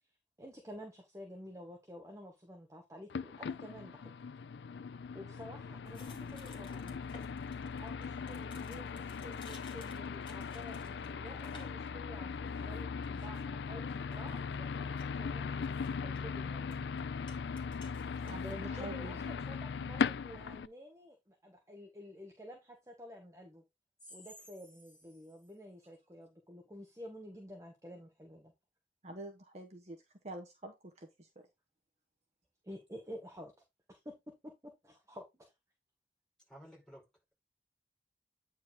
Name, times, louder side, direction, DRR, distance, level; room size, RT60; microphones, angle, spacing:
voice 1, 0.4-4.1 5.1-7.0 7.8-17.0 18.4-23.6 24.1-28.5 32.6-33.5 33.9-34.1 34.4-34.5 34.8-35.5, equal, 15° right, 1.3 m, -50 dB
sound 1, 3.1-20.7, left 5 dB, 75° left, 0.4 m, -39 dB
sound 2, 5.8-20.1, left 3 dB, 30° left, 2.1 m, -60 dB
voice 2, 18.2-19.4 29.0-30.0 30.2-31.5, right 1 dB, 40° right, 1.1 m, -47 dB
voice 3, 36.5-37.3, equal, 5° left, 4.9 m, -54 dB
9.2 x 4.7 x 3.7 m
head